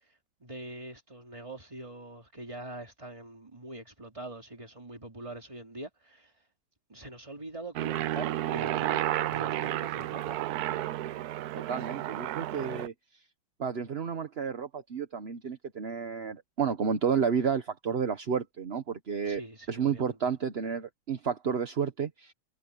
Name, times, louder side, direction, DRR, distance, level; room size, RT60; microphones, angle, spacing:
voice 1, 0.4-6.3 6.9-10.4 19.3-20.3, right 2 dB, 15° right, 2.8 m, -44 dB
Aircraft, 7.8-12.9, right 13 dB, 75° right, 0.9 m, -32 dB
voice 2, 11.5-12.9 13.6-19.4 19.7-22.3, right 6 dB, 40° right, 1.0 m, -31 dB
omnidirectional pair, 2.2 m